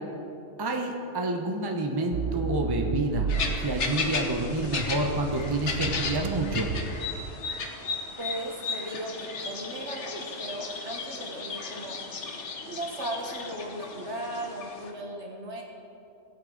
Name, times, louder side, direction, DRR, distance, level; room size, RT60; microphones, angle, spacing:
voice 1, 0.6-3.3 3.6-6.7, right 1 dB, 20° right, 2 dB, 0.8 m, -28 dB
Accelerating revving vroom, 2.1-7.5, right 7 dB, 80° right, 0.9 m, -34 dB
sound 1, 3.3-14.9, left 4 dB, 65° left, 1.3 m, -35 dB
voice 2, 8.2-12.0 12.7-15.6, right 1 dB, 65° right, -1 dB, 2.0 m, -36 dB
18.0 x 8.4 x 4.0 m, 2.8 s
omnidirectional pair, 1.3 m